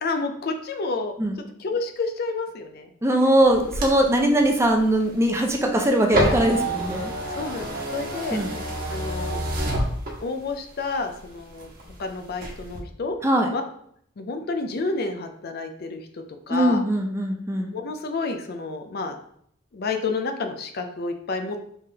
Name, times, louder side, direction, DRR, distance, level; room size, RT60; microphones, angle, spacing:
voice 1, 0.0-1.1 1.6-2.9 7.3-8.4 8.9-9.4 10.2-11.7 12.0-13.2 13.5-13.6 14.2-16.0 16.5-16.8 17.7-19.1 19.7-21.6, left 3 dB, 50° left, 7 dB, 0.5 m, -29 dB
voice 2, 3.0-7.1 8.3-8.5 13.2-13.5 16.5-17.7, right 1 dB, 15° right, 2 dB, 0.5 m, -21 dB
sound 1, 3.4-10.5 11.0-12.0 12.3-12.8, right 1 dB, 45° right, 1.2 m, -28 dB
5.5 x 3.4 x 2.8 m, 0.68 s
head